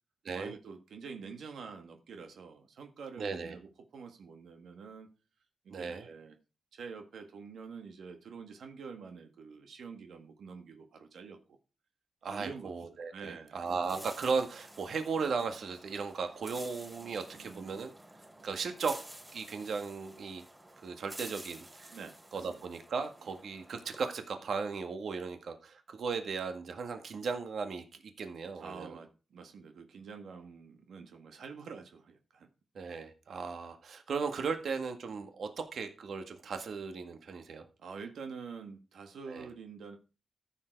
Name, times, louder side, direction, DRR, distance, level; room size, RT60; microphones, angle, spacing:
voice 1, 0.3-5.1 5.7-6.4 6.7-11.6 12.3-13.6 17.3-17.8 21.9-22.5 28.6-32.5 37.8-40.0, right 5 dB, 90° right, 5 dB, 1.8 m, -47 dB
voice 2, 3.2-3.6 5.7-6.0 12.2-17.9 18.4-19.0 19.3-20.4 20.8-22.0 22.3-27.8 28.2-29.0 32.8-37.7 39.3-39.5, right 5 dB, 65° right, 7 dB, 1.8 m, -36 dB
sound 1, 13.7-24.0, right 1 dB, 10° right, 3.9 m, -51 dB
14.5 x 7.6 x 4.7 m, 0.31 s
wide cardioid pair, 140°, 0 cm